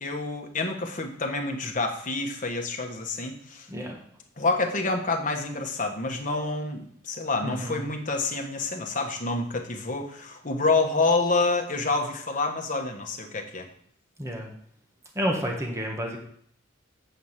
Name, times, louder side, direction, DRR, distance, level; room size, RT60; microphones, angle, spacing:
voice 1, 0.0-3.7 4.4-13.7, left 3 dB, 40° left, 3 dB, 1.3 m, -28 dB
voice 2, 3.7-4.0 7.4-7.8 14.2-14.5 15.1-16.2, equal, 15° right, 1 dB, 1.4 m, -30 dB
8.0 x 4.8 x 7.3 m, 0.62 s
head